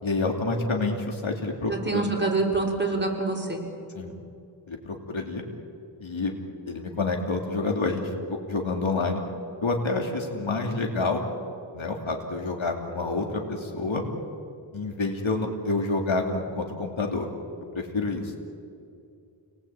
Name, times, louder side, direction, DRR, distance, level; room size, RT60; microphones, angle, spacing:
voice 1, 0.0-2.0 3.9-4.2 4.7-5.4 6.0-6.3 6.7-9.2 9.6-11.2 11.7-14.0 14.7-17.3 17.7-18.3, left 3 dB, 85° left, 2 dB, 2.9 m, -28 dB
voice 2, 1.7-3.6, right 3 dB, 25° right, 0 dB, 5.9 m, -26 dB
29.5 x 20.0 x 8.9 m, 2.6 s
wide cardioid pair, 45°, 46 cm